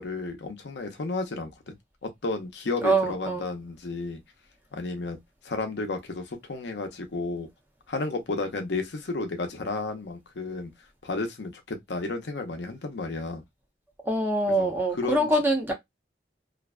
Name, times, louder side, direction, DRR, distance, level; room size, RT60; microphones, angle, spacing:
voice 1, 0.0-1.8 2.0-4.2 4.7-5.2 5.4-7.5 7.9-10.7 11.0-13.4 14.6-15.3, left 3 dB, 75° left, 0.6 m, -32 dB
voice 2, 2.8-3.5 14.0-15.7, right 1 dB, 10° right, 0.6 m, -24 dB
2.5 x 2.1 x 2.3 m
head